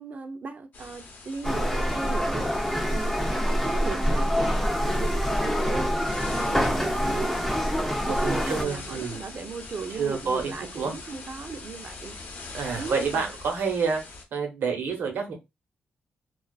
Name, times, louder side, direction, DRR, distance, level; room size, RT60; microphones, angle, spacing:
voice 1, 0.0-7.9 8.2-12.2 12.8-13.3, right 5 dB, 50° right, 0.5 m, -37 dB
sound 1, 0.7-14.2, left 3 dB, 60° left, 0.7 m, -43 dB
sound 2, 1.4-8.6, equal, 5° left, 0.4 m, -26 dB
voice 2, 8.1-9.2 10.0-10.9 12.5-14.0 14.3-15.3, right 5 dB, 80° right, 0.9 m, -28 dB
2.5 x 2.3 x 2.2 m
cardioid pair, 110°, 3 cm